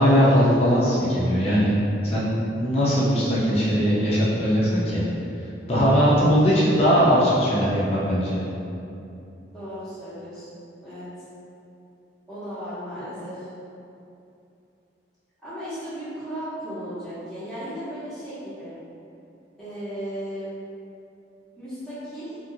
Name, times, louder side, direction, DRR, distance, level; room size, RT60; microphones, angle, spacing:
voice 1, 0.0-1.7 2.0-5.0 5.7-8.4, equal, 30° left, -8 dB, 0.5 m, -20 dB
voice 2, 9.5-10.5 10.8-11.1 12.3-13.5 15.4-18.8 19.6-20.5 21.6-22.4, equal, 5° left, -14 dB, 1.0 m, -35 dB
2.8 x 2.6 x 2.6 m, 2.7 s
head